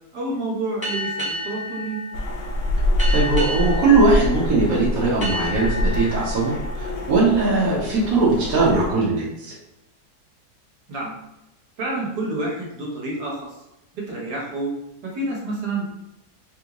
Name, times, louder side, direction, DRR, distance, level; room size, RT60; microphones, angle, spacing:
voice 1, 0.1-2.0 10.9-11.1 11.8-13.5 13.9-14.7 15.0-15.9, right 2 dB, 85° right, -3 dB, 1.6 m, -28 dB
sound 1, 0.8-8.1, equal, 5° right, 0.9 m, -32 dB
sound 2, 2.1-8.9, left 1 dB, 70° left, 0.7 m, -25 dB
voice 2, 3.1-9.5, right 3 dB, 65° right, -6 dB, 1.2 m, -20 dB
3.5 x 2.5 x 2.9 m, 0.89 s
omnidirectional pair, 1.7 m